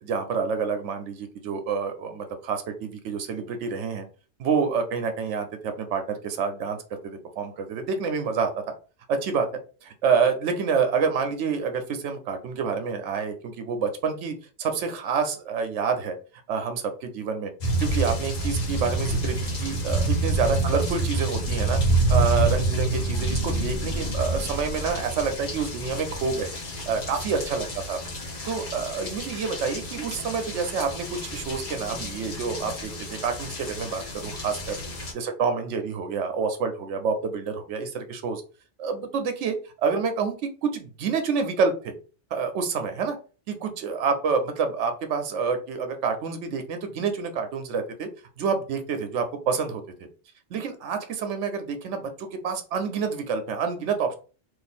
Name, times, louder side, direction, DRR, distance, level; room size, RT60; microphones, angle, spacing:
voice 1, 0.0-4.1 4.4-6.8 7.0-8.5 9.1-9.5 9.8-16.2 16.5-17.5 17.8-21.8 22.1-26.5 26.9-28.0 28.5-38.4 38.8-41.9 42.3-43.2 43.5-48.1 48.4-49.8 50.5-54.1, right 5 dB, 90° right, 7 dB, 0.9 m, -28 dB
sound 1, 17.6-35.1, right 2 dB, 40° left, 0.8 m, -28 dB
2.5 x 2.5 x 4.1 m, 0.36 s
omnidirectional pair, 1.2 m